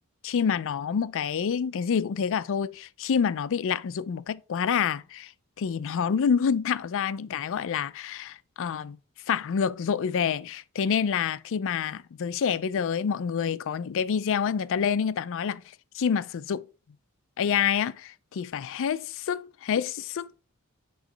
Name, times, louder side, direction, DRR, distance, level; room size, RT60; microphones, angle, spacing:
voice 1, 0.2-5.3 5.6-9.0 9.3-15.6 15.9-16.7 17.4-20.4, left 7 dB, 60° left, 0.4 m, -27 dB
9.0 x 3.1 x 3.8 m
head